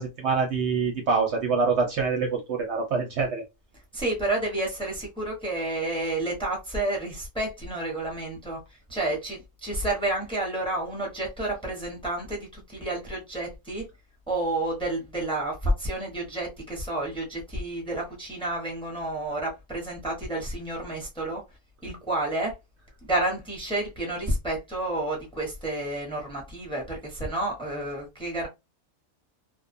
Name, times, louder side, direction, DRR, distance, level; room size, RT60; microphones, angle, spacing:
voice 1, 0.0-3.4, right 5 dB, 65° right, 0.8 m, -25 dB
voice 2, 3.9-8.6 8.9-13.8 14.3-21.4 21.8-22.5 23.0-28.5, right 1 dB, 5° left, 0.8 m, -30 dB
2.5 x 2.2 x 2.5 m
omnidirectional pair, 1.4 m